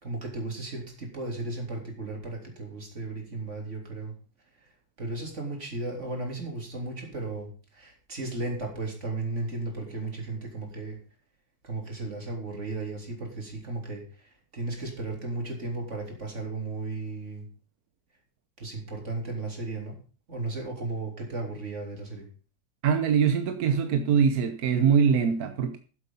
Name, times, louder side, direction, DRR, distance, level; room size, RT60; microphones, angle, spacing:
voice 1, 0.0-4.1 4.6-4.7 5.0-11.0 11.6-17.5 18.6-20.0 20.3-22.3, right 2 dB, 40° right, 1 dB, 3.6 m, -35 dB
voice 2, 22.8-25.8, right 7 dB, 60° right, 8 dB, 1.2 m, -23 dB
13.0 x 7.8 x 5.5 m, 0.38 s
omnidirectional pair, 2.0 m